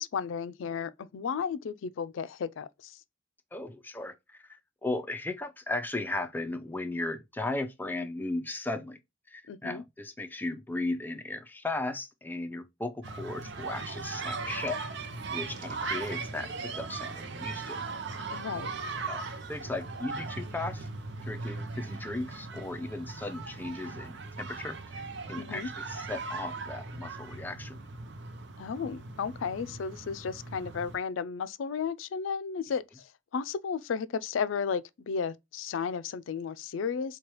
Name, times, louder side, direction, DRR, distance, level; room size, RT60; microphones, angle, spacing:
voice 1, 0.0-3.0 9.5-9.8 18.3-18.7 25.4-25.7 28.6-37.2, left 6 dB, 75° left, 0.4 m, -34 dB
voice 2, 3.5-9.0 9.3-14.8 15.3-17.8 19.1-19.2 19.5-20.9 21.2-25.0 25.3-27.8, left 2 dB, 10° left, 0.5 m, -36 dB
sound 1, 13.0-31.0, right 4 dB, 60° right, 0.6 m, -38 dB
4.6 x 2.3 x 2.9 m
head